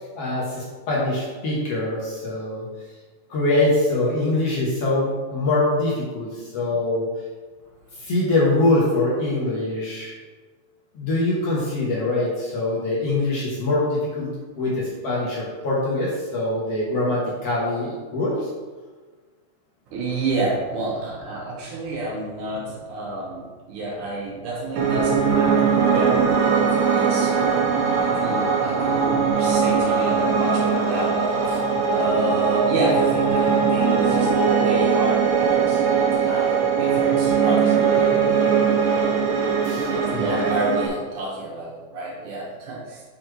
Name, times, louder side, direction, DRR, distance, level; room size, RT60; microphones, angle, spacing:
voice 1, 0.1-2.7 3.3-7.1 8.0-10.2 11.0-14.3 14.6-18.5 39.6-40.5, left 2 dB, 60° left, -6 dB, 2.0 m, -23 dB
voice 2, 19.9-31.6 31.9-38.0 39.9-43.0, right 2 dB, 70° right, -3 dB, 2.7 m, -29 dB
Piano, 24.8-40.9, right 6 dB, 90° right, 2.5 m, -20 dB
6.3 x 4.2 x 4.6 m, 1.4 s
omnidirectional pair, 3.7 m